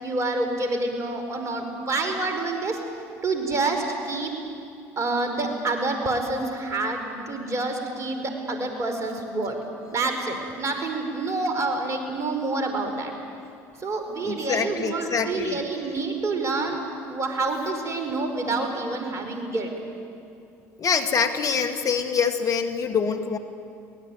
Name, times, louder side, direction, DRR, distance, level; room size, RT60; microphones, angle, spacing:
voice 1, 0.0-2.8 3.2-4.3 5.0-9.6 9.9-13.1 13.8-16.8 17.1-19.7, right 3 dB, 40° right, 5 dB, 5.0 m, -27 dB
voice 2, 14.2-15.6 20.8-23.4, left 6 dB, 45° left, 7 dB, 2.0 m, -25 dB
23.0 x 18.5 x 9.4 m, 2.6 s
hypercardioid pair, 65°, 8 cm